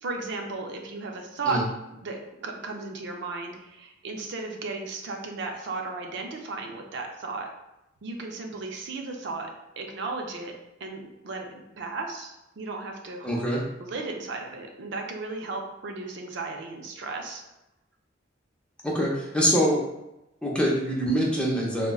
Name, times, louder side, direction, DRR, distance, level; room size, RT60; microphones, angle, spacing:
voice 1, 0.0-1.6 1.9-7.5 8.0-9.5 9.8-10.5 10.8-13.3 13.8-17.4, right 3 dB, 65° right, 2 dB, 0.5 m, -35 dB
voice 2, 13.2-13.6 18.8-19.8 20.4-21.9, equal, 5° left, -3 dB, 0.6 m, -24 dB
3.7 x 2.1 x 2.3 m, 0.90 s
head